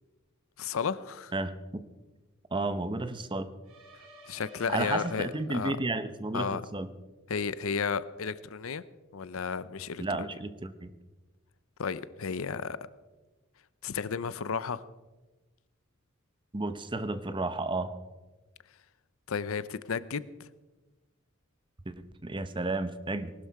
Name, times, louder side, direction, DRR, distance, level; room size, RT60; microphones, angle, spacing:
voice 1, 0.6-1.3 4.3-5.8 6.3-6.6 7.3-8.8 9.1-10.0 11.8-12.8 13.8-14.8 19.3-20.5, left 6 dB, 75° left, 16 dB, 0.6 m, -33 dB
voice 2, 1.3-1.8 2.5-3.5 4.7-6.9 10.0-10.9 16.5-18.0 21.9-22.0 22.2-23.3, right 2 dB, 25° right, 12 dB, 0.8 m, -32 dB
sound 1, 3.6-6.0, right 1 dB, 90° right, 3.5 m, -52 dB
19.5 x 12.0 x 4.7 m, 1.2 s
head